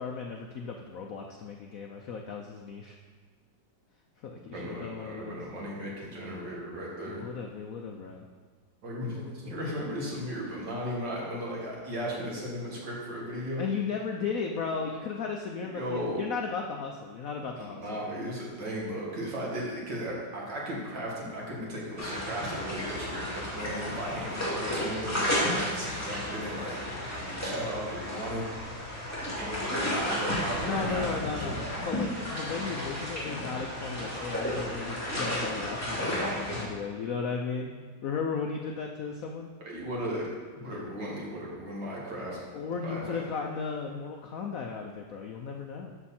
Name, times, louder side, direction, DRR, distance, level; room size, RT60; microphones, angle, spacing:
voice 1, 0.0-3.0 4.2-5.4 7.0-8.3 13.6-18.0 30.6-37.7 38.0-39.5 42.5-45.9, left 5 dB, 70° left, 2 dB, 0.8 m, -35 dB
voice 2, 4.5-7.2 8.8-13.6 15.7-16.3 17.6-26.8 27.1-28.5 29.4-31.6 39.6-40.3 40.6-42.4 42.8-43.5, equal, 60° right, -4 dB, 2.7 m, -36 dB
sound 1, 22.0-36.6, left 1 dB, 10° left, 2.3 m, -33 dB
11.5 x 6.3 x 4.3 m, 1.5 s
omnidirectional pair, 2.1 m